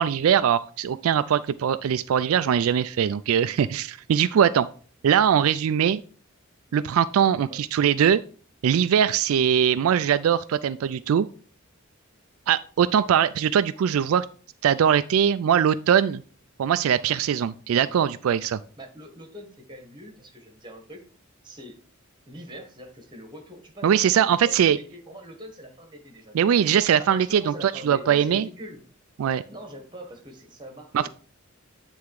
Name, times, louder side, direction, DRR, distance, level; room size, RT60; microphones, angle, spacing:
voice 1, 0.0-4.7 5.0-6.0 6.7-8.2 8.6-11.3 12.5-14.3 14.6-16.2 16.6-18.6 23.8-24.8 26.3-28.5 29.2-29.4 30.9-31.1, right 8 dB, 80° right, 12 dB, 0.3 m, -21 dB
voice 2, 18.8-21.0 21.4-21.8 22.3-26.4 27.0-28.8 29.5-31.1, equal, 20° right, 4 dB, 1.4 m, -42 dB
9.4 x 3.5 x 4.7 m, 0.42 s
head